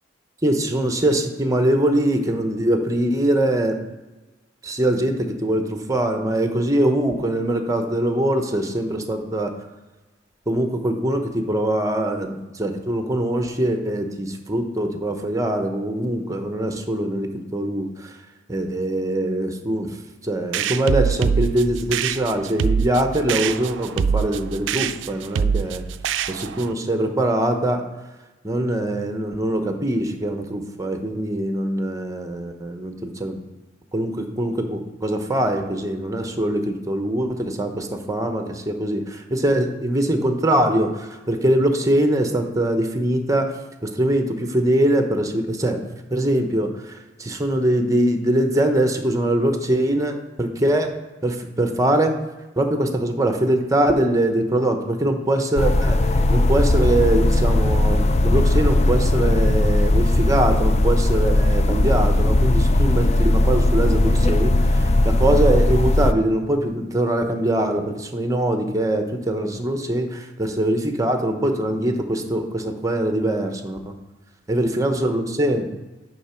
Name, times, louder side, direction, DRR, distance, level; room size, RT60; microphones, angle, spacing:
voice 1, 0.4-3.8 4.6-5.2 5.4-9.5 10.5-17.9 18.5-19.9 20.2-25.8 26.3-27.8 28.4-33.4 33.9-39.0 39.3-40.9 41.3-43.5 44.0-45.8 46.1-46.7 47.2-50.9 51.2-52.1 52.6-56.0 56.3-64.5 65.0-73.9 74.5-75.7, right 1 dB, 20° right, 5 dB, 0.9 m, -22 dB
sound 1, 20.5-26.7, right 6 dB, 70° right, 0.3 m, -24 dB
sound 2, 55.6-66.1, left 1 dB, 35° left, 0.4 m, -18 dB
9.2 x 3.7 x 5.7 m, 1.1 s
head